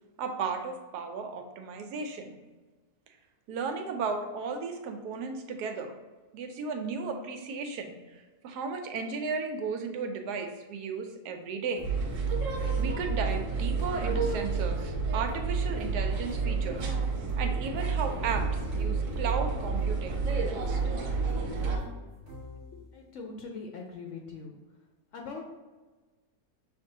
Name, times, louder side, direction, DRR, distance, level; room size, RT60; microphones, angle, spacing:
voice 1, 0.2-2.4 3.5-5.9 6.3-7.9 8.4-11.8 12.8-17.0 17.4-20.8, right 5 dB, 90° right, 5 dB, 1.2 m, -35 dB
sound 1, 11.8-22.9, equal, 30° right, 0.5 m, -47 dB
sound 2, 11.8-21.8, right 4 dB, 60° right, 1.0 m, -30 dB
voice 2, 22.7-24.6 25.1-25.4, left 4 dB, 65° left, 1 dB, 0.8 m, -42 dB
6.5 x 2.6 x 2.7 m, 1.2 s
omnidirectional pair, 1.7 m